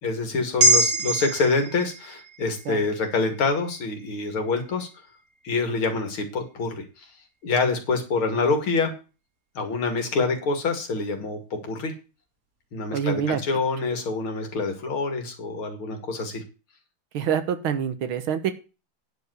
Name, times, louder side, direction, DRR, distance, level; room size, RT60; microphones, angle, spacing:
voice 1, 0.0-4.9 5.4-7.1 7.4-8.9 9.5-11.4 11.6-11.9 12.7-16.4, left 4 dB, 75° left, 5 dB, 3.1 m, -26 dB
sound 1, 0.6-5.1 5.5-5.6, right 1 dB, 45° right, 2.3 m, -26 dB
voice 2, 12.9-13.4 17.1-18.5, right 8 dB, 75° right, 11 dB, 2.0 m, -26 dB
10.0 x 5.2 x 8.0 m, 0.32 s
omnidirectional pair, 2.3 m